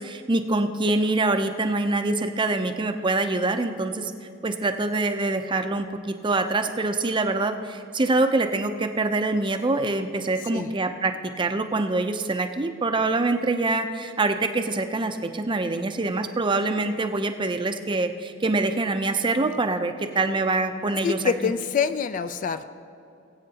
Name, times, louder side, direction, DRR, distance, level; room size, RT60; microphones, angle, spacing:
voice 1, 0.0-4.1 4.4-21.2, right 2 dB, 25° right, 7 dB, 0.5 m, -25 dB
voice 2, 21.0-22.7, left 6 dB, 40° left, 12 dB, 0.3 m, -25 dB
20.0 x 8.6 x 2.8 m, 2.7 s
head